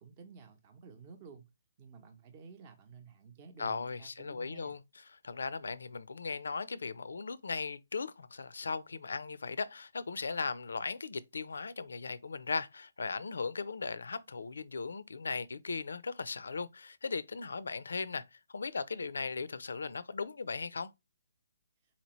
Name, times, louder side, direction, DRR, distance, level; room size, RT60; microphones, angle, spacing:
voice 1, 0.0-1.4 1.8-4.8, right 5 dB, 30° right, 0.8 m, -53 dB
voice 2, 3.6-4.8 5.2-20.9, left 4 dB, 80° left, 0.4 m, -38 dB
4.1 x 2.8 x 3.0 m
hypercardioid pair, 150°, 0 cm